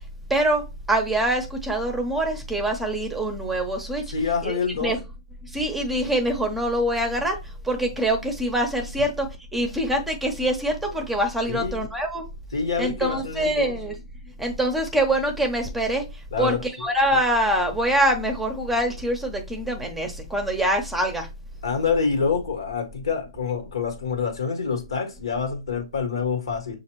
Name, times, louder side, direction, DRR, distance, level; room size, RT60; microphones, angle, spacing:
voice 1, 0.3-4.0 4.4-4.5 4.8-5.0 5.5-7.4 7.6-9.3 9.5-12.2 12.8-14.0 14.4-16.0 16.4-21.3, right 1 dB, 5° right, 0.8 m, -24 dB
voice 2, 4.1-5.0 11.5-11.8 12.5-13.7 16.3-16.9 21.6-26.8, left 5 dB, 75° left, 1.5 m, -26 dB
6.3 x 2.5 x 3.0 m
hypercardioid pair, 125°, 3 cm